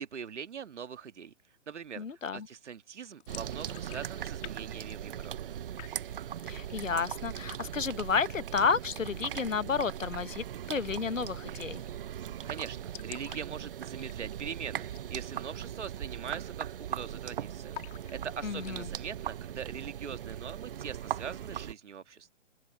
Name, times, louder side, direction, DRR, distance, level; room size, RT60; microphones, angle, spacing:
voice 1, 0.0-1.3 1.7-2.0 2.3-5.5 12.4-22.3, right 7 dB, 65° right, 1.8 m, -42 dB
voice 2, 2.0-2.5 6.5-11.8 18.4-18.9, left 5 dB, 85° left, 1.3 m, -31 dB
sound 1, 3.2-4.6 4.8-5.5 5.8-6.3 6.7-7.2 7.5-7.6 8.0-8.6 10.3-10.5 10.8-10.9 11.1-11.2 11.5-11.9 12.2-12.3 12.4-14.5 14.8-15.1 15.4-15.5 16.1-16.4 16.6-17.2 17.7-18.8, left 18 dB, 20° left, 2.8 m, -49 dB
sound 2, 3.3-21.7, right 10 dB, 45° right, 1.0 m, -39 dB
hypercardioid pair, 140°, 37 cm